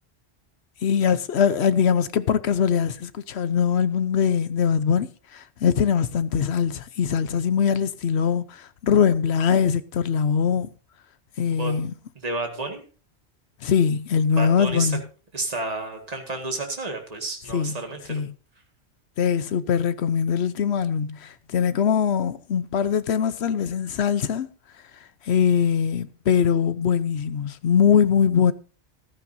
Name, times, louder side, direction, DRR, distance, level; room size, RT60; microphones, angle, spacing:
voice 1, 0.8-10.7 11.4-11.9 13.6-15.0 17.5-17.8 18.1-18.3 19.2-24.5 25.2-28.5, left 7 dB, 75° left, 1.0 m, -22 dB
voice 2, 12.2-12.8 14.3-14.9 15.3-18.2, right 2 dB, 35° right, 2.0 m, -31 dB
15.0 x 13.5 x 2.7 m
omnidirectional pair, 1.1 m